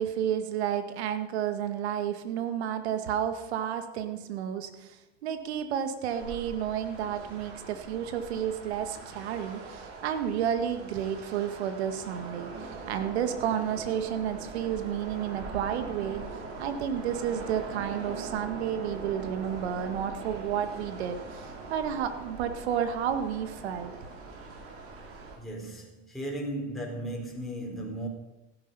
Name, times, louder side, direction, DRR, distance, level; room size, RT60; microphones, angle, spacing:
voice 1, 0.0-16.2 16.6-23.9, right 9 dB, 80° right, 1.9 m, -31 dB
sound 1, 6.1-25.4, right 3 dB, 45° right, 5.0 m, -42 dB
voice 2, 25.4-28.1, right 1 dB, ahead, 4.1 m, -36 dB
16.5 x 10.5 x 5.5 m
supercardioid pair, 105°, 32 cm